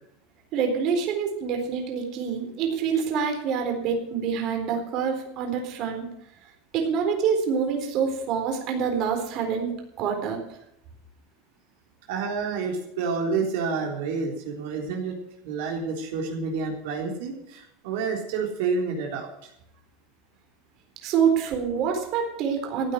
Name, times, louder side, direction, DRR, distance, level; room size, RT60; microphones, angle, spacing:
voice 1, 0.5-6.1 6.7-10.4 21.0-22.9, right 6 dB, 45° right, 3 dB, 4.0 m, -26 dB
voice 2, 12.1-15.1 15.4-19.3, right 5 dB, 75° right, 0 dB, 3.7 m, -29 dB
15.0 x 9.6 x 6.5 m, 0.79 s
supercardioid pair, 140°, 0 cm